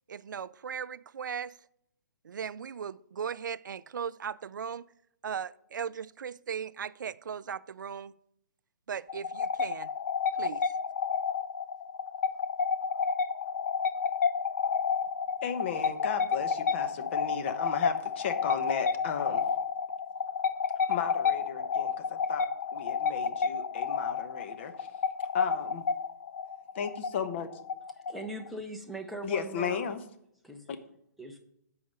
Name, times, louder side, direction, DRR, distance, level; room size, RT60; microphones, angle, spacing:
voice 1, 0.1-1.6 2.2-4.8 5.2-8.1 8.9-9.9 10.4-10.6, right 7 dB, 80° right, 0.4 m, -37 dB
sound 1, 9.1-28.5, left 6 dB, 60° left, 0.5 m, -31 dB
voice 2, 15.4-19.4 20.9-22.5 22.7-24.9 25.3-25.8 26.7-27.5 29.2-30.0, left 6 dB, 40° left, 0.9 m, -34 dB
voice 3, 28.1-29.8 30.4-30.7 31.2-31.4, right 1 dB, ahead, 0.7 m, -40 dB
8.7 x 4.8 x 6.5 m
hypercardioid pair, 155°, 10 cm